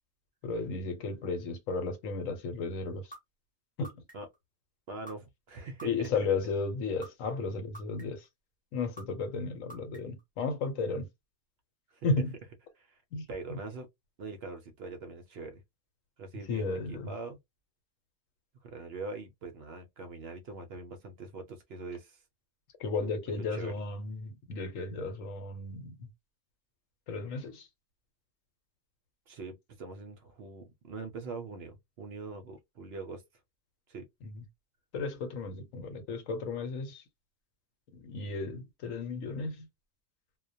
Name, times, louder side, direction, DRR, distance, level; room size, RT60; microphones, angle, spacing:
voice 1, 0.4-3.1 3.8-3.9 5.8-8.2 8.7-11.1 12.0-12.3 13.1-13.6 16.5-17.1 22.8-26.1 27.1-27.7 34.2-34.4 34.9-37.0 37.9-39.7, left 4 dB, 80° left, 1.1 m, -34 dB
sound 1, 3.1-3.2 3.8-4.4 5.1-5.2 5.8-6.3 7.0-7.1 7.7-8.3 9.0-9.1 9.7-10.2, right 1 dB, 10° left, 0.4 m, -47 dB
voice 2, 4.9-5.9 11.9-12.1 12.7-13.0 13.3-13.9 14.2-15.6 16.2-17.4 18.6-22.2 23.0-23.7 29.3-33.2 33.9-34.0, right 3 dB, 65° right, 0.7 m, -43 dB
2.2 x 2.1 x 2.5 m
omnidirectional pair, 1.3 m